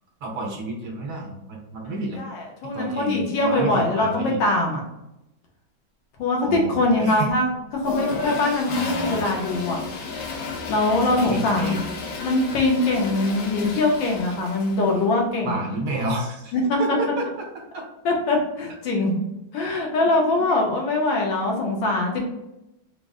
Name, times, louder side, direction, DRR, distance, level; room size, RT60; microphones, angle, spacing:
voice 1, 0.2-2.2 2.7-4.4 6.4-7.3 8.7-9.4 11.1-11.9 15.4-16.5 16.8-17.3 17.7-17.8 20.3-20.4, right 1 dB, 70° right, 0 dB, 1.4 m, -30 dB
voice 2, 1.8-4.8 6.2-7.5 7.7-9.8 10.7-11.8 12.2-15.6 16.5-17.0 18.0-19.2 19.5-22.2, left 2 dB, 90° left, 0 dB, 1.6 m, -22 dB
Toilet flush, 7.8-15.0, left 4 dB, 65° left, 1.0 m, -32 dB
3.9 x 2.0 x 3.6 m, 0.89 s
omnidirectional pair, 2.0 m